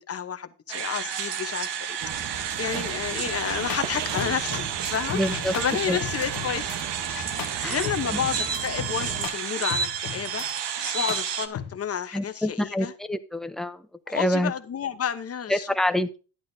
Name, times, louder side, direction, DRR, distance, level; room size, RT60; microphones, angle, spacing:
voice 1, 0.0-5.2 5.5-6.7 7.6-10.4 10.9-12.9 14.1-15.7, left 8 dB, 30° left, 0.9 m, -31 dB
sound 1, 0.7-11.5, right 8 dB, 60° right, 1.0 m, -31 dB
sound 2, 2.0-9.3, right 7 dB, 40° right, 1.2 m, -37 dB
sound 3, 3.5-6.8 7.1-10.5 10.8-11.8, left 9 dB, 45° left, 1.2 m, -37 dB
voice 2, 5.1-5.5 5.9-6.0 7.6-7.8 8.1-8.2 12.1-14.5 15.5-16.2, left 1 dB, ahead, 0.6 m, -27 dB
11.0 x 10.5 x 2.7 m
cardioid pair, 135°, 49 cm